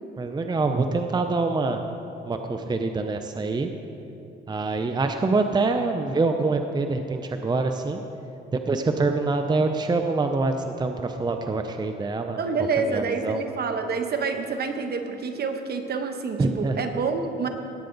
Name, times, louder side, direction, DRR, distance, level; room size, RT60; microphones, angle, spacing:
voice 1, 0.2-1.8 2.3-3.7 4.5-8.0 8.5-12.4 12.8-13.4 16.4-16.8, right 3 dB, 20° right, 6 dB, 0.6 m, -25 dB
voice 2, 12.4-17.5, right 4 dB, 55° right, 6 dB, 1.1 m, -27 dB
17.5 x 8.8 x 3.9 m, 2.9 s
cardioid pair, 90°, 20 cm